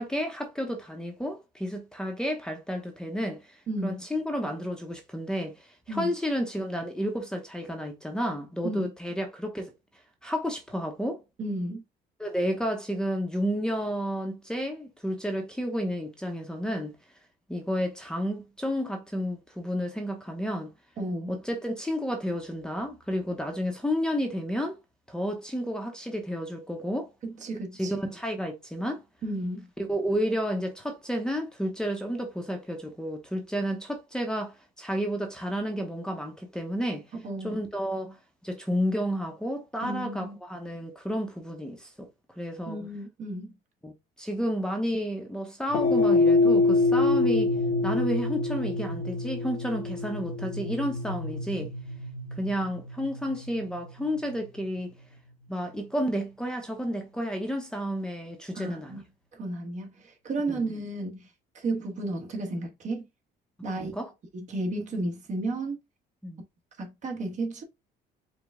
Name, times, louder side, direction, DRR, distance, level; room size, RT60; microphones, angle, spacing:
voice 1, 0.0-3.6 3.8-9.7 10.2-11.2 12.2-16.9 17.5-20.7 21.3-24.8 25.1-27.1 27.8-29.0 29.8-37.0 37.4-42.1 42.4-42.8 43.8-43.9 44.2-47.5 47.8-51.7 52.4-54.9 55.5-59.0 60.5-60.6 63.8-64.1 66.2-66.4, equal, 5° left, 0.8 m, -31 dB
voice 2, 3.7-4.0 5.9-6.1 8.6-8.9 11.4-11.8 21.0-21.3 27.2-27.9 29.2-29.7 37.1-37.6 39.8-40.4 42.7-43.5 58.5-59.0 59.3-61.3 61.5-63.0 63.6-63.9 64.3-65.8 66.8-67.6, right 2 dB, 45° right, 1.4 m, -33 dB
sound 1, 45.7-54.2, left 3 dB, 55° left, 0.8 m, -26 dB
5.1 x 2.3 x 3.6 m
cardioid pair, 110°, 17 cm